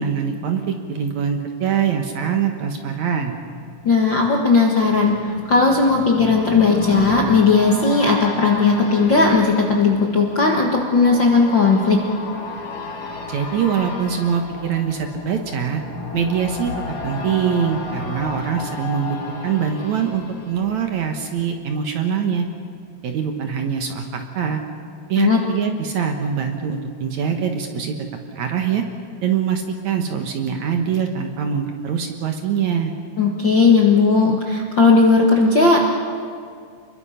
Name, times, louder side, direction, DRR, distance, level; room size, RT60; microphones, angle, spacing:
voice 1, 0.0-3.3 13.3-15.8 16.1-16.7 17.0-19.2 19.4-22.5 23.0-24.6 25.1-28.0 28.3-28.8 29.2-32.9, right 7 dB, 60° right, 5 dB, 2.3 m, -23 dB
sound 1, 3.6-21.4 21.8-21.9, left 4 dB, 80° left, 4.5 m, -33 dB
voice 2, 3.8-12.0 25.2-25.4 33.2-35.8, left 4 dB, 50° left, 0 dB, 1.4 m, -16 dB
29.5 x 22.0 x 5.8 m, 2.2 s
omnidirectional pair, 4.3 m